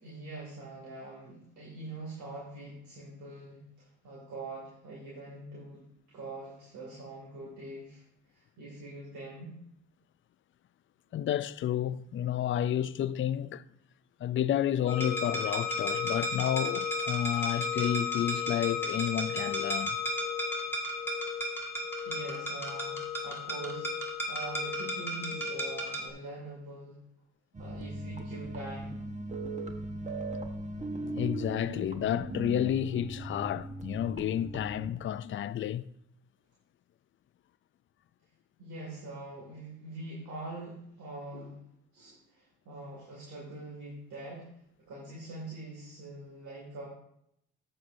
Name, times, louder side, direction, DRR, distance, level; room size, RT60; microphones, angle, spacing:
voice 1, 0.0-8.0 8.3-9.6 22.0-23.9 24.3-27.0 27.6-29.1 38.6-41.6 41.9-44.5 44.9-46.9, right 2 dB, 75° right, 2.3 m, -44 dB
voice 2, 11.1-13.6 14.2-20.0 31.2-35.8, left 11 dB, 40° left, 0.4 m, -31 dB
sound 1, 14.9-26.1, left 3 dB, 5° left, 2.0 m, -33 dB
sound 2, 27.5-34.9, right 2 dB, 25° right, 1.1 m, -38 dB
11.5 x 7.7 x 2.6 m
cardioid pair, 90°, 30 cm